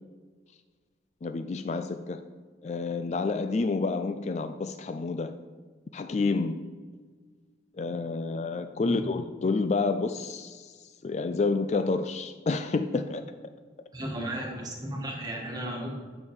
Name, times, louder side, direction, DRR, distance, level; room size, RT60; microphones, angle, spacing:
voice 1, 1.2-2.2 2.6-5.3 5.9-6.6 7.8-10.7 11.0-13.2, left 3 dB, 35° left, 9 dB, 0.3 m, -29 dB
voice 2, 13.9-16.0, right 1 dB, 20° right, 0 dB, 1.5 m, -35 dB
8.7 x 6.3 x 5.1 m, 1.5 s
head